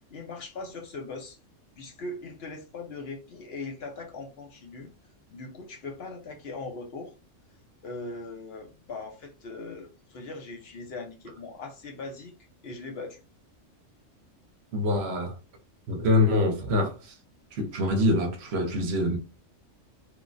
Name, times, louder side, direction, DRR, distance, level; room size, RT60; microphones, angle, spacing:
voice 1, 0.1-1.4 1.8-4.9 5.3-7.1 7.8-12.3 12.6-13.2, left 3 dB, 60° left, 0.9 m, -40 dB
voice 2, 14.7-15.4 15.9-17.1 17.5-19.2, left 1 dB, 65° right, 0.8 m, -25 dB
3.1 x 2.1 x 2.5 m
omnidirectional pair, 1.3 m